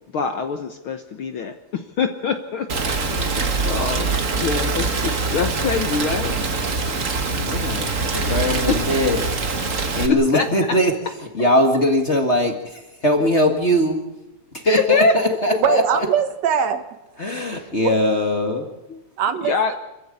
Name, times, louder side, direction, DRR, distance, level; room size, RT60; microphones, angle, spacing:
voice 1, 0.1-2.7 3.0-3.4 3.6-6.3 8.7-8.9 10.1-10.5 14.6-15.1 15.5-15.6 17.5-17.7 18.9-19.0 19.5-19.7, left 5 dB, 60° left, 7 dB, 1.5 m, -24 dB
Rain, 2.7-10.1, right 3 dB, 35° right, 1.4 m, -23 dB
voice 2, 7.4-9.2 9.9-10.9 11.3-14.0 14.5-15.8 17.2-18.7, equal, 25° left, 4 dB, 1.7 m, -20 dB
voice 3, 15.6-16.9 17.8-18.0 19.2-19.8, right 8 dB, 65° right, 9 dB, 2.4 m, -21 dB
26.5 x 14.5 x 8.6 m, 0.99 s
omnidirectional pair, 3.4 m